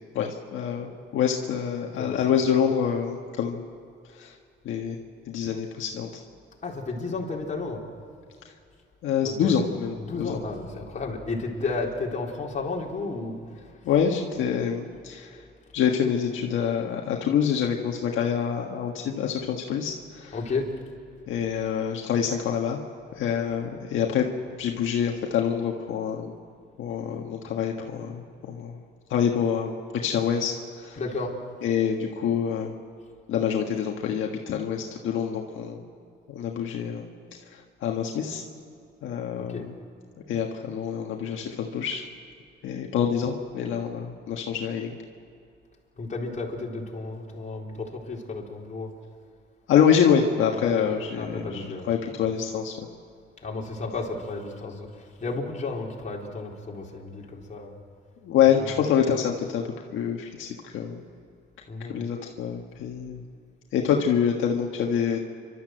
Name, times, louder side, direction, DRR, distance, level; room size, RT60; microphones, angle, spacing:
voice 1, 0.1-3.6 4.2-4.3 4.6-5.0 5.3-6.1 9.0-10.4 13.8-15.3 15.7-20.3 21.3-22.8 23.2-24.3 24.6-26.3 26.8-28.2 28.5-28.7 29.1-29.7 30.0-31.0 31.6-32.7 33.3-35.8 36.3-37.0 37.8-38.4 39.0-39.7 40.3-42.0 42.6-44.9 49.7-52.7 58.2-59.6 59.9-60.5 60.7-61.0 61.9-63.2 63.7-65.2, left 8 dB, 80° left, 1 dB, 1.6 m, -26 dB
voice 2, 1.9-2.4 6.6-7.8 9.2-9.5 10.0-13.3 20.3-20.7 31.0-31.4 39.4-39.6 46.0-48.9 50.5-50.9 51.1-51.9 53.4-57.8 58.6-58.9 61.7-62.0, left 3 dB, 40° left, -2 dB, 4.1 m, -33 dB
29.5 x 13.0 x 7.9 m, 2.4 s
cardioid pair, 90°, 20 cm